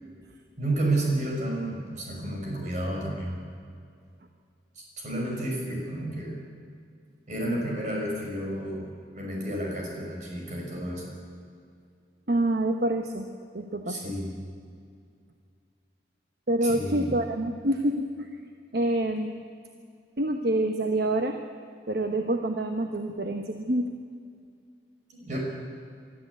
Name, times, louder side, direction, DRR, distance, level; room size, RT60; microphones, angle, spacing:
voice 1, 0.6-3.4 5.0-6.4 7.3-8.9 9.2-11.1 13.9-14.4 16.6-17.1 25.1-25.4, right 1 dB, 45° right, -1 dB, 5.7 m, -31 dB
voice 2, 12.3-14.1 16.5-18.4 18.7-19.4 20.2-21.4 21.9-23.9, right 1 dB, 60° right, 4 dB, 1.1 m, -27 dB
23.5 x 13.5 x 8.3 m, 2.3 s
head